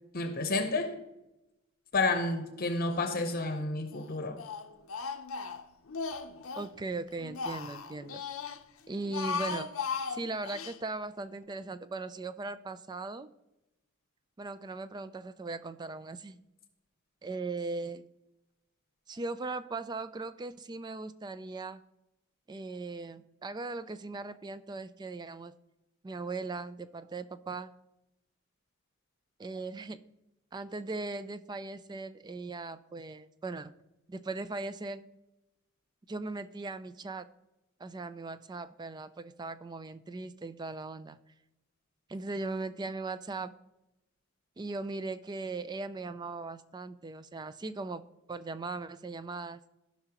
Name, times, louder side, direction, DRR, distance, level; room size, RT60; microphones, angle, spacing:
voice 1, 0.1-1.0 1.9-4.4, left 3 dB, 45° left, 7 dB, 0.8 m, -30 dB
Speech, 2.9-3.6 3.9-6.7 7.1-8.6 9.0-10.8, left 5 dB, 90° left, 0.7 m, -37 dB
voice 2, 6.6-8.2 8.9-9.7 10.1-13.3 14.4-16.4 17.2-18.1 19.1-21.8 22.5-25.6 26.0-27.8 29.4-30.0 30.5-33.7 34.1-35.0 36.1-37.3 37.8-41.2 42.1-43.5 44.6-49.6, right 3 dB, 20° right, 13 dB, 0.3 m, -39 dB
15.5 x 5.6 x 2.9 m, 0.94 s
head